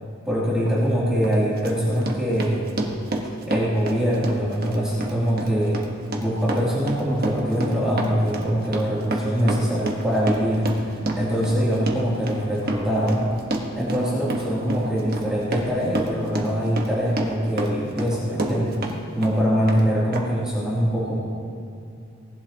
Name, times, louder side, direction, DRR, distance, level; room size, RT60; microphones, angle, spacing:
voice 1, 0.2-2.7 3.5-5.8 6.2-13.3 13.8-21.2, equal, 5° right, -9 dB, 2.8 m, -23 dB
Run, 0.6-0.8 1.2-19.0 19.2-19.8 20.1-20.2, right 1 dB, 50° right, 1.3 m, -30 dB
19.0 x 11.5 x 2.9 m, 2.6 s
head